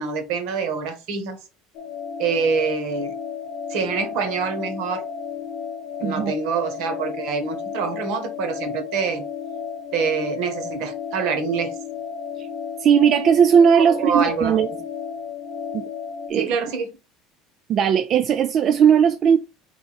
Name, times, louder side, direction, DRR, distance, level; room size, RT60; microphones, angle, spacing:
voice 1, 0.0-1.4 2.2-3.1 3.7-5.0 6.0-9.2 9.9-11.7 13.7-14.6 16.3-17.0, right 5 dB, 65° right, 1.2 m, -25 dB
sound 1, 1.7-16.3, left 7 dB, 65° left, 0.8 m, -33 dB
voice 2, 6.0-6.3 12.8-14.7 15.7-15.8 16.3-16.5 17.7-19.4, right 7 dB, 35° right, 0.3 m, -17 dB
3.9 x 3.4 x 4.0 m
cardioid pair, 150°, 0 cm